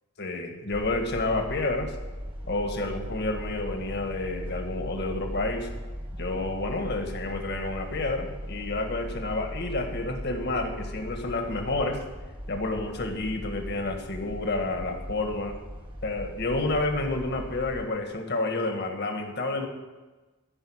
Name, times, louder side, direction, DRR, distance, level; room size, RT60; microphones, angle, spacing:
voice 1, 0.2-1.9 2.4-5.7 6.2-12.0 12.5-15.5 16.0-19.7, left 2 dB, 50° left, 4 dB, 1.6 m, -30 dB
sound 1, 0.7-17.9, equal, 25° right, 1.5 m, -38 dB
14.0 x 5.6 x 8.7 m, 1.2 s
head